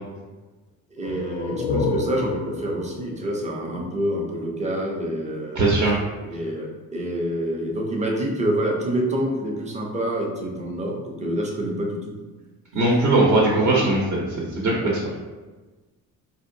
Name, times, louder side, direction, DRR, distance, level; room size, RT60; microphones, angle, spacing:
voice 1, 0.9-5.7 6.2-12.1 13.5-13.6, right 1 dB, 20° right, 0 dB, 0.5 m, -27 dB
sound 1, 1.0-4.5, left 3 dB, 55° left, 0.5 m, -30 dB
voice 2, 5.5-6.0 12.7-14.2 14.6-15.0, right 2 dB, 50° right, -3 dB, 0.7 m, -19 dB
4.3 x 2.7 x 2.6 m, 1.3 s
cardioid pair, 160°, 36 cm